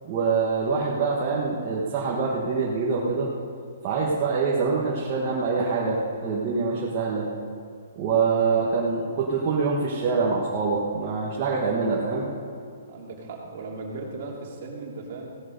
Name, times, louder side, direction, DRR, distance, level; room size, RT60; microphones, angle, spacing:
voice 1, 0.1-3.3 3.8-7.3 8.0-12.3, right 4 dB, 25° right, -5 dB, 1.4 m, -25 dB
voice 2, 12.9-15.3, right 3 dB, 40° right, -1 dB, 2.5 m, -37 dB
16.0 x 11.0 x 5.3 m, 2.3 s
hypercardioid pair, 175°, 0 cm